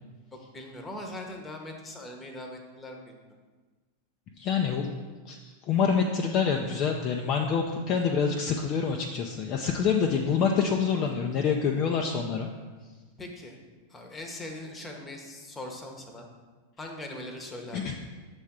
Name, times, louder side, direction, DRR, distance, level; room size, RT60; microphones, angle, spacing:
voice 1, 0.5-3.1 13.2-13.6 13.9-16.3 16.8-17.8, left 1 dB, 15° left, 3 dB, 1.0 m, -40 dB
voice 2, 4.4-4.9 5.3-12.5 17.7-18.0, left 6 dB, 35° left, 1 dB, 0.5 m, -26 dB
7.1 x 3.5 x 5.9 m, 1.3 s
figure-of-eight pair, 90°, 0 cm